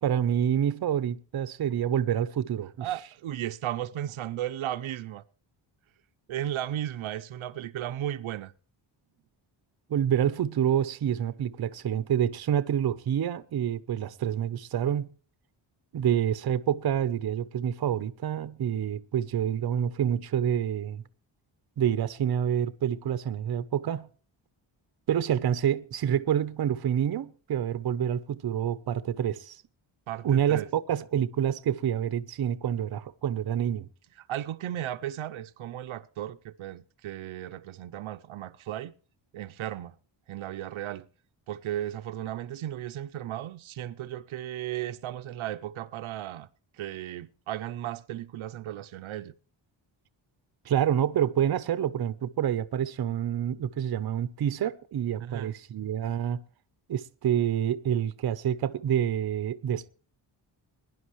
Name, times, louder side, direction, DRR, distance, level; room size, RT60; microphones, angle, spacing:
voice 1, 0.0-2.9 9.9-15.1 15.9-21.0 21.8-24.1 25.1-29.6 30.2-33.9 50.7-56.4 56.9-59.9, right 9 dB, 50° right, 0.8 m, -27 dB
voice 2, 2.8-5.2 6.3-8.5 15.9-16.0 30.1-30.7 34.2-38.9 39.3-40.0 40.3-41.1 41.5-46.5 46.8-49.3 55.2-55.5, right 12 dB, 85° right, 0.8 m, -35 dB
21.5 x 11.0 x 3.1 m
wide cardioid pair, 180°, 47 cm